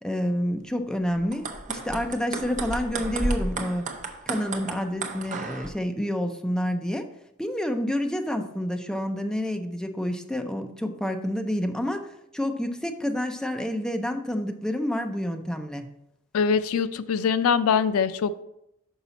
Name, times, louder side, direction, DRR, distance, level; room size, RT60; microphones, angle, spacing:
voice 1, 0.0-3.8 4.3-7.1 7.4-12.1 12.3-15.8, equal, 5° left, 5 dB, 0.5 m, -28 dB
sound 1, 1.2-5.7, right 2 dB, 35° right, 0.7 m, -32 dB
voice 2, 16.3-18.4, left 6 dB, 75° left, 14 dB, 0.4 m, -23 dB
5.9 x 5.6 x 4.0 m, 0.81 s
head